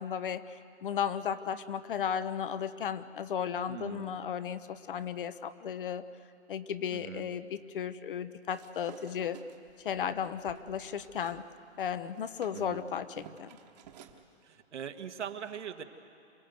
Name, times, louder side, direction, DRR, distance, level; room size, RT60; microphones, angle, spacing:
voice 1, 0.0-6.0 6.5-9.4 9.8-11.4 11.8-13.5, left 8 dB, 50° left, 13 dB, 0.9 m, -35 dB
voice 2, 3.7-4.2 6.9-7.3 12.5-12.9 14.4-15.8, right 8 dB, 85° right, 6 dB, 1.7 m, -41 dB
sound 1, 8.5-11.4 11.8-14.2, right 8 dB, 35° right, 1.3 m, -53 dB
27.0 x 18.0 x 8.0 m, 2.5 s
hypercardioid pair, 170°, 34 cm